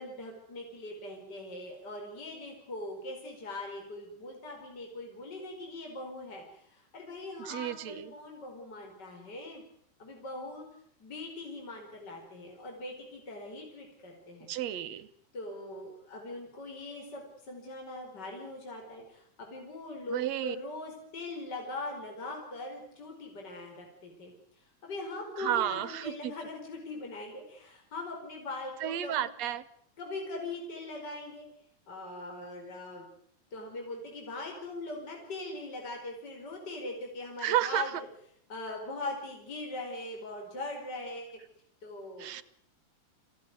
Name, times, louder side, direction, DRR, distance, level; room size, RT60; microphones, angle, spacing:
voice 1, 0.0-9.6 10.0-10.7 11.0-14.5 15.3-24.3 24.8-29.3 30.0-31.5 31.9-33.1 33.5-38.1 38.5-41.4 41.8-42.3, left 2 dB, 30° left, 1 dB, 5.3 m, -41 dB
voice 2, 7.4-8.1 14.5-15.1 20.1-20.6 25.4-26.3 28.8-29.7 37.4-38.0 42.2-42.4, right 11 dB, 65° right, 16 dB, 2.0 m, -32 dB
27.0 x 16.5 x 9.5 m, 0.69 s
omnidirectional pair, 3.7 m